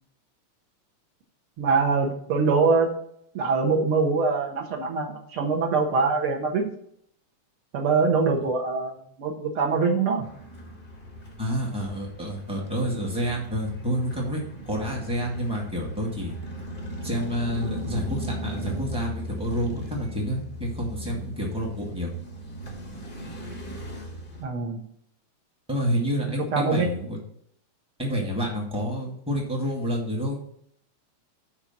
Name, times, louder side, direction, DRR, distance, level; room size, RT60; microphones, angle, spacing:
voice 1, 1.6-2.9 3.3-6.7 7.7-10.2 24.4-24.8 26.5-26.9, right 4 dB, 55° right, 3 dB, 1.7 m, -23 dB
sound 1, 10.2-24.4, equal, 65° left, 0.5 m, -38 dB
voice 2, 11.4-16.3 17.0-22.1 25.7-27.2 28.0-30.3, equal, 5° right, -2 dB, 1.0 m, -29 dB
10.0 x 3.5 x 5.8 m, 0.69 s
omnidirectional pair, 3.4 m